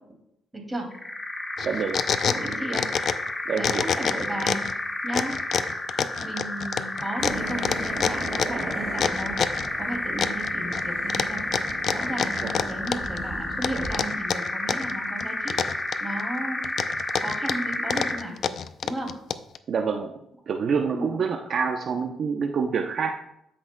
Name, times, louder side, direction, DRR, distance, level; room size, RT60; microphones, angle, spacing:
voice 1, 0.5-0.9 2.3-2.9 3.5-4.6 5.0-5.3 6.2-9.4 9.8-11.4 11.9-15.5 16.0-16.6 17.1-18.3 18.8-19.1 20.9-21.2, right 1 dB, 15° right, 2 dB, 2.3 m, -34 dB
sound 1, 0.9-18.3, left 1 dB, 20° left, 1.1 m, -31 dB
sound 2, 1.6-3.3 3.6-4.7 5.1-9.7 10.2-10.8 11.1-13.2 13.6-14.9 15.2-16.2 16.6-19.6, left 7 dB, 60° left, 0.4 m, -27 dB
voice 2, 1.6-2.0 3.5-3.9 12.4-12.7 19.7-20.1 20.5-23.2, right 5 dB, 55° right, 3 dB, 0.7 m, -27 dB
sound 3, 7.2-14.0, right 2 dB, 75° right, 1.7 m, -38 dB
13.0 x 5.9 x 2.2 m, 0.78 s
cardioid pair, 90°, 0 cm